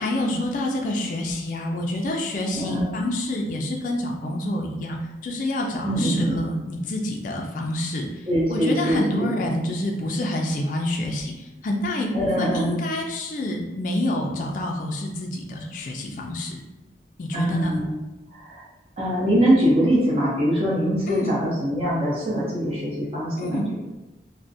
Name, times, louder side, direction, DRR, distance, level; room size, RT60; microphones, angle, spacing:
voice 1, 0.0-16.6 17.2-17.8 21.1-21.4 23.4-23.7, left 1 dB, 45° left, 1 dB, 0.3 m, -28 dB
voice 2, 2.4-3.0 5.8-6.5 8.3-9.3 12.1-12.8 17.3-17.9 18.3-18.6 19.0-23.6, equal, 30° right, -6 dB, 0.7 m, -23 dB
2.4 x 2.0 x 2.6 m, 1.0 s
head